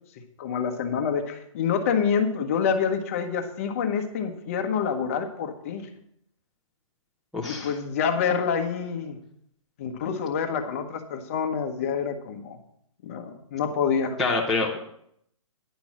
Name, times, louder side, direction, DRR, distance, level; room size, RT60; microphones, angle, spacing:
voice 1, 0.4-5.9 7.5-9.2 9.8-12.6 13.0-14.2, left 6 dB, 25° left, 6 dB, 1.0 m, -27 dB
voice 2, 7.3-7.7 14.2-14.8, left 3 dB, ahead, -9 dB, 0.6 m, -26 dB
10.5 x 6.0 x 7.3 m, 0.71 s
hypercardioid pair, 170°, 17 cm